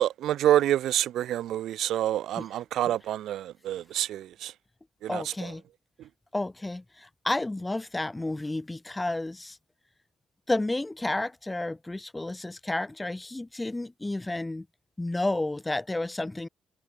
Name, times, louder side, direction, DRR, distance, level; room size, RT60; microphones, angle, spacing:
voice 1, 0.0-4.5 5.0-5.5, right 12 dB, 80° right, 2.6 m, -27 dB
voice 2, 5.1-5.6 6.3-9.6 10.5-14.7 15.0-16.5, left 2 dB, 15° left, 8.0 m, -31 dB
cardioid pair, 90°, 0 cm